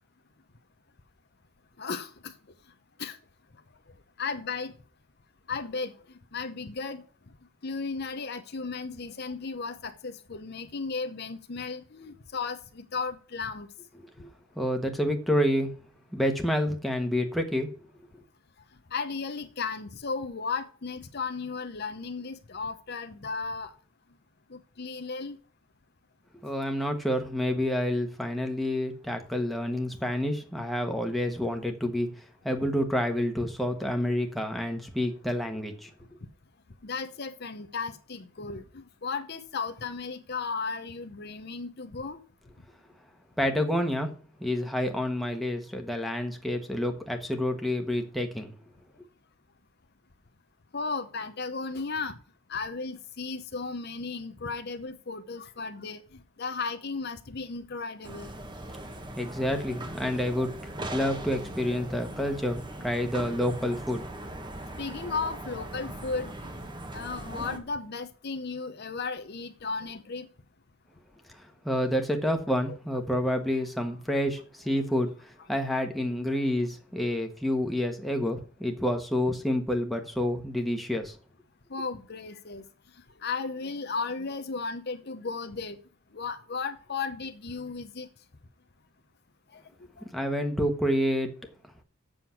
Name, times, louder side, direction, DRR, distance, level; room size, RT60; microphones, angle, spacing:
voice 1, 1.8-2.3 3.0-3.2 4.2-4.7 5.5-6.0 6.3-7.0 7.6-13.7 18.9-23.7 24.5-25.4 36.8-42.2 50.7-52.2 52.5-56.0 56.4-58.3 64.8-66.6 66.9-70.3 81.7-82.6 83.2-85.8 86.1-88.1 89.5-89.6 90.0-90.1, left 4 dB, 50° left, 0.8 m, -35 dB
voice 2, 14.6-15.7 16.1-17.7 26.4-32.1 32.4-35.9 43.4-44.1 44.4-48.5 59.2-60.5 60.9-64.0 71.6-81.2 90.1-91.3, left 1 dB, ahead, 1.3 m, -28 dB
sound 1, 58.0-67.6, right 1 dB, 20° right, 1.2 m, -40 dB
7.8 x 6.7 x 5.8 m
head